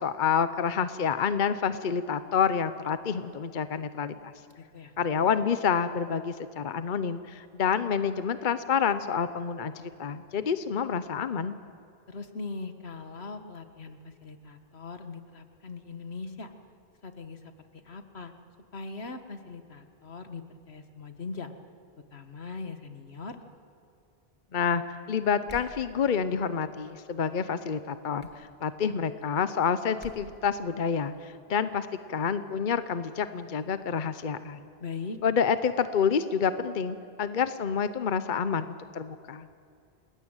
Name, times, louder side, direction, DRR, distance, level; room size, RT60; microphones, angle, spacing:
voice 1, 0.0-4.3 5.0-11.6 24.5-24.8 25.1-34.6 35.2-39.5, left 6 dB, 50° left, 12 dB, 0.9 m, -28 dB
voice 2, 4.6-4.9 12.1-16.5 17.0-18.3 18.7-21.5 22.1-23.4 34.8-35.2, left 4 dB, 80° left, 8 dB, 1.8 m, -40 dB
sound 1, 25.5-25.8 28.2-28.4 30.0-30.2, equal, 10° left, 2.6 m, -45 dB
29.5 x 20.0 x 9.0 m, 2.4 s
omnidirectional pair, 1.1 m